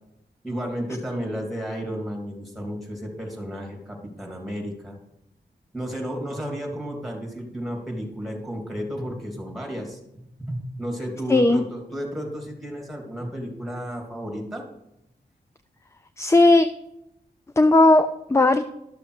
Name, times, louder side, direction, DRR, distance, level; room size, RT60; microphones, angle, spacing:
voice 1, 0.4-5.0 5.7-14.6, equal, ahead, 1 dB, 2.9 m, -32 dB
voice 2, 11.3-11.6 16.2-16.7 17.6-18.6, left 2 dB, 15° left, 10 dB, 0.5 m, -16 dB
12.5 x 6.8 x 4.9 m, 0.83 s
wide cardioid pair, 80°, 18 cm